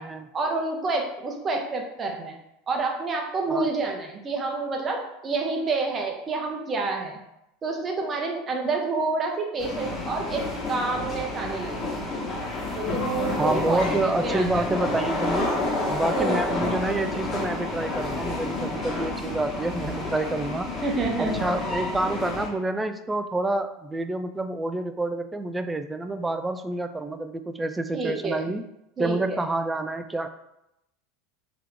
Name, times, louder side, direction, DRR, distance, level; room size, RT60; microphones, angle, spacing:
voice 1, 0.3-2.4 2.7-7.2 7.6-10.4 10.7-11.7 12.7-14.0 14.2-14.6 16.1-16.4 20.8-21.5 27.9-28.4 29.0-29.4, right 3 dB, 30° right, 2 dB, 0.8 m, -28 dB
sound 1, 9.6-22.5, left 2 dB, 25° left, 1.4 m, -29 dB
voice 2, 13.4-15.5 15.9-20.7 21.2-28.6 29.0-30.3, right 2 dB, 10° right, 9 dB, 0.3 m, -28 dB
3.6 x 2.9 x 3.5 m, 0.85 s
hypercardioid pair, 80°, 0 cm